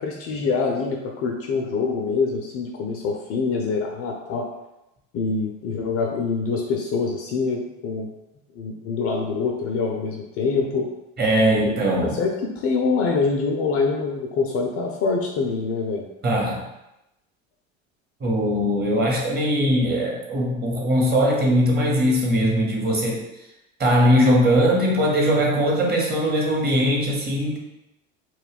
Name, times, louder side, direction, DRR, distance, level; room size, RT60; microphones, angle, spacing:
voice 1, 0.0-4.5 5.1-8.1 8.6-10.9 11.6-11.7 12.2-16.1, left 4 dB, 40° left, 1 dB, 0.4 m, -25 dB
voice 2, 11.2-12.2 16.2-16.6 18.2-23.2 23.8-27.6, equal, 25° right, -2 dB, 0.9 m, -20 dB
2.2 x 2.1 x 3.4 m, 0.90 s
hypercardioid pair, 85°, 38 cm